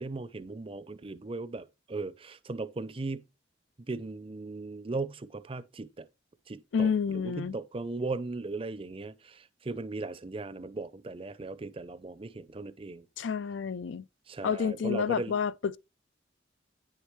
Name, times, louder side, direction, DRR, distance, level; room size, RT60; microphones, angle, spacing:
voice 1, 0.0-3.2 3.9-6.1 6.5-13.0 14.3-15.3, right 3 dB, 30° right, 0.5 m, -37 dB
voice 2, 6.7-7.6 13.2-14.1 14.4-15.8, left 6 dB, 85° left, 0.4 m, -29 dB
9.6 x 6.6 x 3.1 m
head